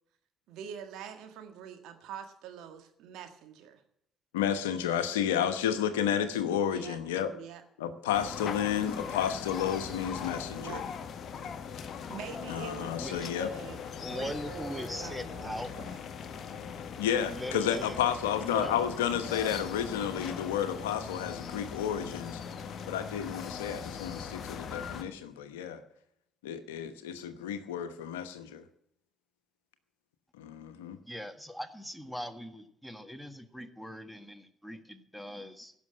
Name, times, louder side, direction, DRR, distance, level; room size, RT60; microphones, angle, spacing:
voice 1, 0.5-3.8 6.7-7.0 7.3-7.6 10.6-11.0 12.0-16.0, right 8 dB, 65° right, 6 dB, 1.6 m, -45 dB
voice 2, 4.3-7.3 7.8-10.8 12.5-13.5 17.0-22.4 22.9-25.8 26.4-28.6 30.4-31.0, left 9 dB, 80° left, 10 dB, 1.0 m, -31 dB
sound 1, 8.1-25.0, left 7 dB, 50° left, 1.1 m, -40 dB
voice 3, 13.0-13.3 14.0-15.7 17.2-18.0 18.5-18.7 31.0-35.7, equal, ahead, 8 dB, 1.6 m, -40 dB
16.0 x 6.2 x 8.5 m, 0.74 s
hypercardioid pair, 50°, 0 cm